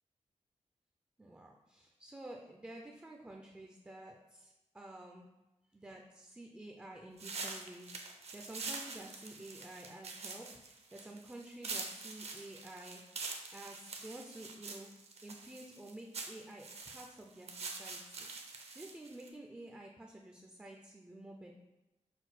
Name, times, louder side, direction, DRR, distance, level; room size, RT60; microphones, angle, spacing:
voice 1, 1.2-5.3 5.7-13.0 13.5-14.9 15.2-21.5, right 1 dB, 10° right, 1 dB, 0.3 m, -51 dB
sound 1, 7.2-19.3, right 3 dB, 55° right, 0.6 m, -45 dB
6.0 x 2.2 x 4.1 m, 0.99 s
wide cardioid pair, 140°, 13 cm